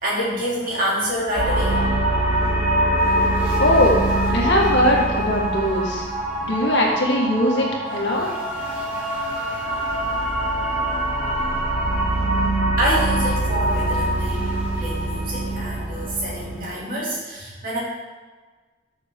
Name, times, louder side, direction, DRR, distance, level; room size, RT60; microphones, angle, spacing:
voice 1, 0.0-2.0 12.8-17.8, equal, 45° right, -6 dB, 2.9 m, -27 dB
sound 1, 1.3-16.6, right 1 dB, 15° right, 2.9 m, -23 dB
voice 2, 3.6-4.0 4.3-6.1 6.4-8.3, left 1 dB, 60° left, -2 dB, 1.9 m, -20 dB
12.5 x 6.5 x 3.7 m, 1.3 s
head